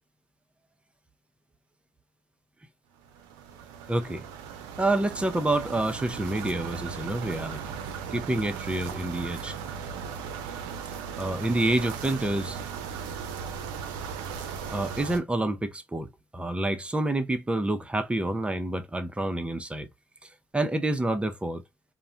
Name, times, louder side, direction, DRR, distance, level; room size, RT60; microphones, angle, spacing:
sound 1, 3.0-15.2, right 7 dB, 80° right, 0.4 m, -37 dB
voice 1, 3.9-4.2 4.8-7.7 8.1-9.6 11.2-12.6 14.7-19.9 20.2-21.6, right 1 dB, 15° right, 0.5 m, -28 dB
2.4 x 2.1 x 2.6 m
hypercardioid pair, 60°, 8 cm